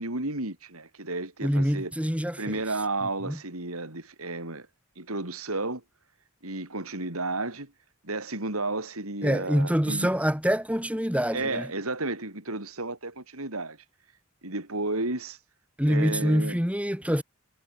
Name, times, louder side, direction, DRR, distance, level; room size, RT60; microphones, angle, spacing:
voice 1, 0.0-1.9 2.4-4.7 5.0-5.8 6.4-7.7 8.0-10.1 11.3-13.8 14.4-15.4 15.9-16.6, right 2 dB, 90° right, 5.5 m, -32 dB
voice 2, 1.4-2.6 3.2-3.4 9.2-11.7 15.8-17.2, equal, 5° right, 6.6 m, -25 dB
head